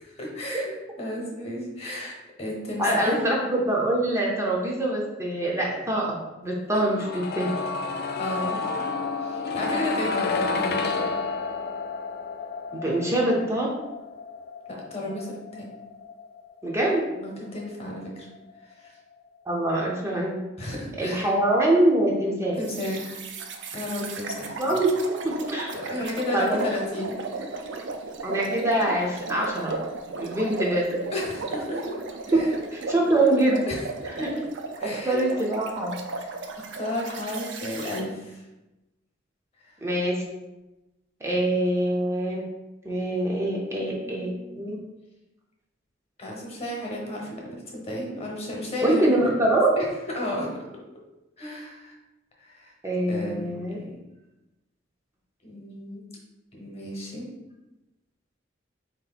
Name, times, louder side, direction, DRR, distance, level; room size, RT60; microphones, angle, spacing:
voice 1, 0.0-0.7 1.0-3.3 8.2-8.6 9.2-11.0 14.7-15.7 17.1-18.3 18.8-18.9 20.6-21.3 22.6-23.2 23.7-24.6 25.7-27.2 31.1-31.8 32.3-32.5 33.7-33.8 34.8-35.2 36.2-36.3 36.5-38.4 39.6-39.7 43.6-44.7 46.2-49.3 49.8-49.9 50.1-50.5 51.4-51.9 52.4-52.7 53.1-53.5 55.4-56.0 56.5-57.3, left 1 dB, 35° left, -2 dB, 1.0 m, -33 dB
voice 2, 2.8-6.2 6.4-7.5 12.7-13.7 16.6-17.1 19.5-20.4 21.0-22.6 24.6-24.9 25.2-25.7 26.3-26.6 28.2-29.8 30.2-30.9 32.3-32.4 32.7-33.6 34.2-34.3 34.8-36.0 39.8-40.2 41.2-42.4 42.8-44.8 48.8-49.7 52.8-53.8, right 1 dB, 15° right, -3 dB, 0.6 m, -24 dB
sound 1, 6.7-18.6 18.8-18.9, left 4 dB, 55° left, 0.4 m, -31 dB
sound 2, 22.6-38.0, right 3 dB, 65° right, 0.5 m, -35 dB
4.1 x 2.8 x 4.0 m, 1.0 s
head